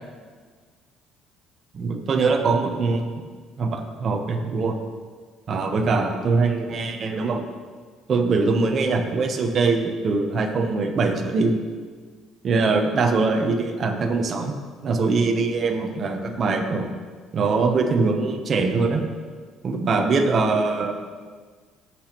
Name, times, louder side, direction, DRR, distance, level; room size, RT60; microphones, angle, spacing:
voice 1, 1.7-3.1 3.6-4.8 5.5-7.4 8.1-11.6 12.4-14.5 14.8-16.9 17.3-19.0 19.6-20.9, right 4 dB, 35° right, 4 dB, 0.8 m, -22 dB
15.0 x 5.9 x 3.0 m, 1.5 s
cardioid pair, 155°, 0 cm